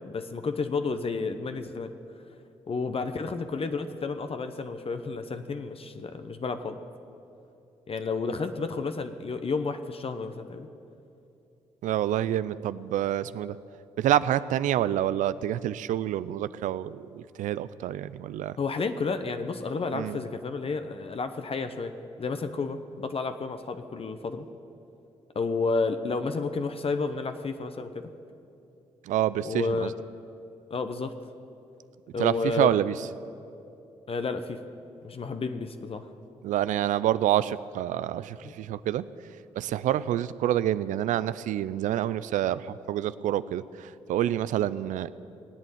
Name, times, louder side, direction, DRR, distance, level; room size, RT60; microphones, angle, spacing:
voice 1, 0.0-1.9 2.7-6.8 7.9-10.7 18.6-21.9 22.2-24.5 25.3-28.1 29.4-29.9 30.7-31.1 32.1-32.7 34.1-34.6 35.0-36.1 38.4-38.5, left 4 dB, 45° left, 8 dB, 1.0 m, -31 dB
voice 2, 11.8-13.5 14.0-18.6 19.9-20.2 29.1-29.9 32.2-32.9 36.4-39.0 39.6-42.6 42.9-43.6 44.1-45.1, right 12 dB, 75° right, 16 dB, 0.5 m, -27 dB
18.5 x 8.3 x 9.2 m, 2.8 s
supercardioid pair, 50°, 13 cm